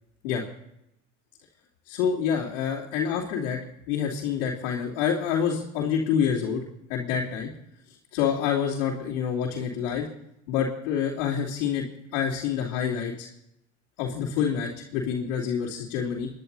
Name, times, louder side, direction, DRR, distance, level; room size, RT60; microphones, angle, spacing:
voice 1, 1.9-3.6 3.9-6.6 6.9-7.5 8.1-10.1 10.5-11.8 12.1-13.3 14.0-16.3, left 7 dB, 75° left, -6 dB, 3.2 m, -27 dB
28.5 x 10.5 x 4.1 m, 0.84 s
hypercardioid pair, 85°, 37 cm